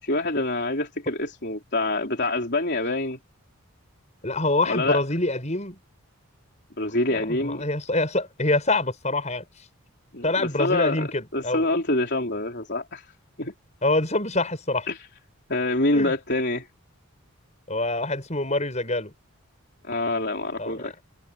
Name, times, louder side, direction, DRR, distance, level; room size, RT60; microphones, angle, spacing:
voice 1, 0.0-3.2 4.6-5.0 6.8-7.6 10.1-13.1 13.4-13.5 14.9-15.0 15.5-16.7 19.9-21.0, left 2 dB, 50° left, 3.9 m, -26 dB
voice 2, 4.2-5.8 7.1-9.4 10.2-11.7 13.8-14.9 15.9-16.1 17.7-19.1 20.6-20.9, left 2 dB, 30° left, 6.4 m, -25 dB
head